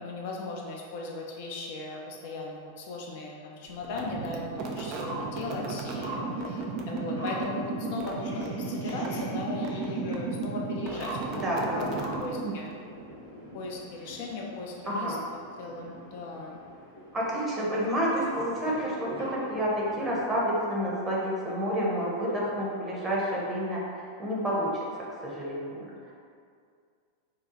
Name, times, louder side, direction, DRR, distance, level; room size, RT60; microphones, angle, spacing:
voice 1, 0.0-11.4 11.8-11.9 12.2-12.7 13.5-16.6 17.9-18.1, left 3 dB, 50° left, -2 dB, 0.4 m, -37 dB
sound 1, 3.8-12.8, right 3 dB, 40° right, 0.3 m, -34 dB
sound 2, 4.4-20.6, equal, 70° left, 0.9 m, -43 dB
voice 2, 11.4-12.1 14.9-15.2 17.1-24.8 25.2-25.8, equal, 15° right, -5 dB, 0.8 m, -29 dB
2.8 x 2.3 x 3.8 m, 2.2 s
figure-of-eight pair, 90°, 0 cm